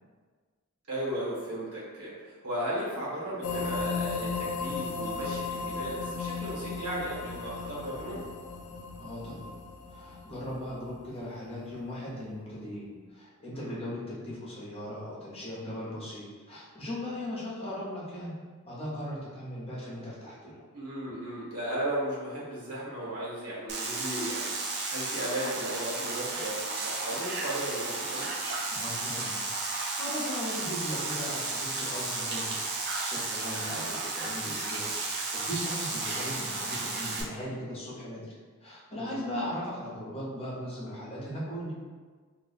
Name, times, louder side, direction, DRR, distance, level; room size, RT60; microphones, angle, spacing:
voice 1, 0.9-8.2 13.5-13.7 20.7-28.3 33.5-33.8 38.9-39.2, right 1 dB, 75° right, -7 dB, 1.4 m, -36 dB
sound 1, 3.4-11.2, left 5 dB, 70° left, 0.4 m, -35 dB
voice 2, 9.0-9.6 9.9-18.3 18.6-20.6 28.7-32.6 33.0-34.9 35.3-38.3 38.6-41.7, left 1 dB, 25° left, -7 dB, 0.9 m, -38 dB
sound 2, 23.7-37.2, right 3 dB, 50° right, 0.5 m, -33 dB
2.6 x 2.4 x 4.0 m, 1.5 s
head